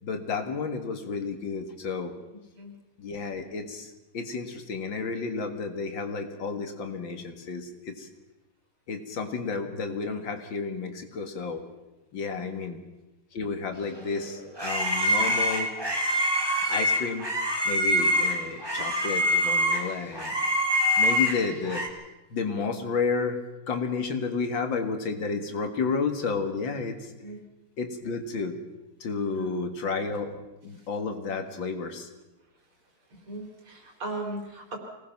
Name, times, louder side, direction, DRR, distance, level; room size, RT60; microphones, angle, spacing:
voice 1, 0.0-2.1 3.0-8.1 8.9-11.6 12.1-12.8 13.3-15.7 16.7-17.3 17.7-20.4 21.0-21.9 22.3-23.4 23.7-27.1 27.8-28.6 29.0-32.1, left 4 dB, 65° left, 6 dB, 2.4 m, -31 dB
voice 2, 12.3-12.6 27.2-27.4 29.3-29.5 33.3-34.8, right 2 dB, 75° right, 2 dB, 4.6 m, -38 dB
sound 1, 14.0-21.9, equal, 10° right, 2.2 m, -25 dB
25.5 x 18.5 x 5.9 m, 1.0 s
omnidirectional pair, 2.3 m